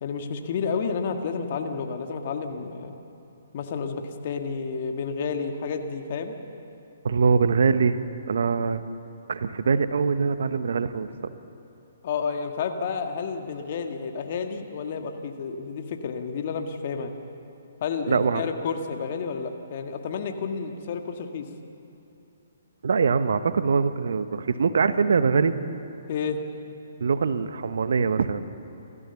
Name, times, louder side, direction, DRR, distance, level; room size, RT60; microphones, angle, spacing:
voice 1, 0.0-3.0 3.5-6.4 12.0-17.1 17.8-21.5 26.1-26.4, left 5 dB, 50° left, 5 dB, 1.8 m, -30 dB
voice 2, 7.0-8.0 8.3-8.8 9.3-11.1 18.1-18.4 22.8-25.5 27.0-28.4, right 5 dB, 65° right, 12 dB, 1.0 m, -23 dB
27.5 x 14.0 x 7.0 m, 2.9 s
figure-of-eight pair, 135°, 0 cm